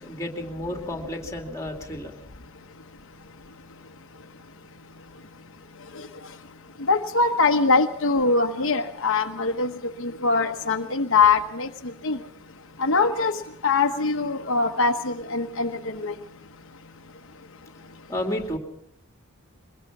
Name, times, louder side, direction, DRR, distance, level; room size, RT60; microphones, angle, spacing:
voice 1, 0.0-2.1 18.1-18.6, left 1 dB, 15° left, 3 dB, 2.6 m, -31 dB
voice 2, 6.9-9.7 10.2-11.7 12.0-12.2 12.8-13.3 13.6-15.7 16.0-16.1, left 4 dB, 60° left, 4 dB, 1.1 m, -22 dB
23.0 x 21.0 x 6.0 m, 0.76 s
head